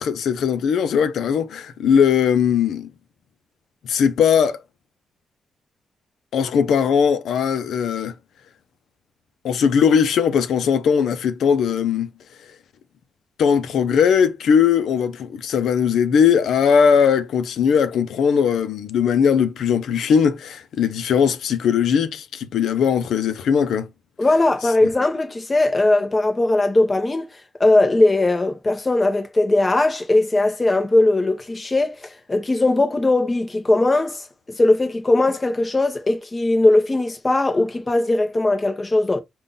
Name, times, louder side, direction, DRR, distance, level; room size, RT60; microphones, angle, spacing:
voice 1, 0.0-2.9 3.9-4.6 6.3-8.1 9.4-12.1 13.4-23.9, left 7 dB, 85° left, 0.6 m, -19 dB
voice 2, 24.2-27.3 27.6-34.2 34.6-39.2, left 2 dB, 20° left, 0.8 m, -19 dB
5.4 x 2.4 x 3.8 m
wide cardioid pair, 170°, 0 cm